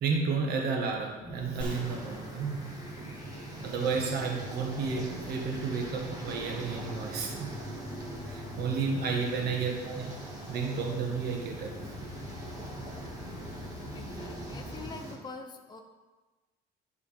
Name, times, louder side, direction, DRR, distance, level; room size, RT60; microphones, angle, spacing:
voice 1, 0.0-2.6 3.6-7.5 8.2-10.1 10.5-11.7, right 5 dB, 70° right, 1 dB, 1.7 m, -32 dB
sound 1, 1.2-14.9, left 2 dB, 45° left, 2.2 m, -45 dB
sound 2, 1.6-3.9, left 1 dB, 5° left, 2.0 m, -45 dB
sound 3, 1.6-15.2, right 2 dB, 20° right, 1.9 m, -42 dB
voice 2, 13.9-15.8, left 4 dB, 25° left, 3 dB, 0.8 m, -45 dB
10.0 x 4.9 x 5.2 m, 1.2 s
cardioid pair, 110°, 17 cm